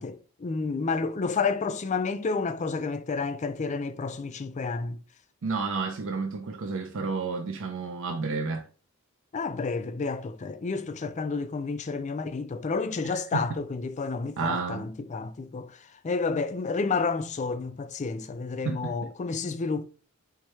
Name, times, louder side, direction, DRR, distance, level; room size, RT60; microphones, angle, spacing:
voice 1, 0.0-5.0 9.3-15.7 16.0-19.8, left 4 dB, 35° left, 0.4 m, -30 dB
voice 2, 5.4-8.7 13.0-13.5 14.4-14.9 18.6-18.9, right 4 dB, 65° right, 0.5 m, -31 dB
4.6 x 2.3 x 4.2 m
head